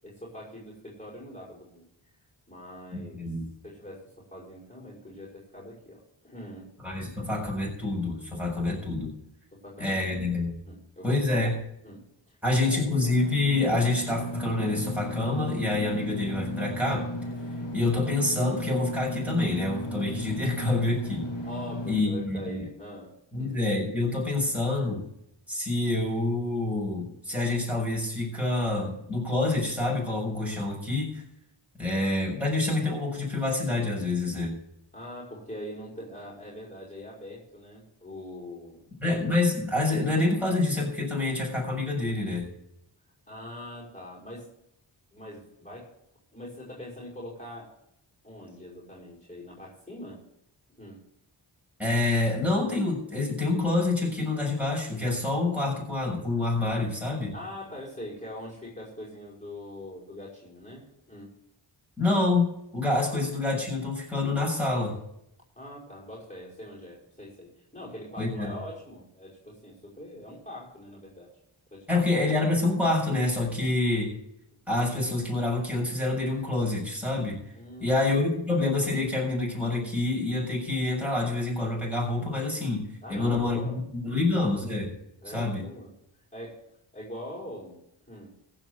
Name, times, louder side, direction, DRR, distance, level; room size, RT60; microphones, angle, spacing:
voice 1, 0.0-1.9 2.5-3.3 3.6-7.1 9.5-10.4 10.7-11.5 11.8-12.4 12.7-12.8 21.4-23.1 23.4-23.5 34.9-38.8 43.3-44.5 45.1-45.9 46.3-47.7 48.2-50.3 50.8-51.0 57.3-61.3 65.6-71.3 71.7-72.1 77.5-78.1 83.0-83.8 84.1-84.3 85.2-85.9 86.3-86.6 86.9-87.8 88.1-88.3, left 1 dB, 15° left, -6 dB, 5.6 m, -43 dB
voice 2, 2.9-3.5 6.8-9.1 9.8-10.5 11.0-11.6 12.4-17.1 17.7-21.3 21.9-22.6 23.3-25.0 25.5-31.2 31.8-34.5 39.0-42.5 51.8-57.3 62.0-65.0 68.2-68.5 71.9-74.1 74.7-77.4 77.8-82.8 83.1-84.9 85.3-85.6, left 2 dB, 5° right, -3 dB, 6.7 m, -27 dB
Engine / Mechanisms, 13.1-22.0, left 1 dB, 70° left, 1.9 m, -35 dB
15.5 x 5.7 x 8.1 m, 0.78 s
cardioid pair, 50°, 47 cm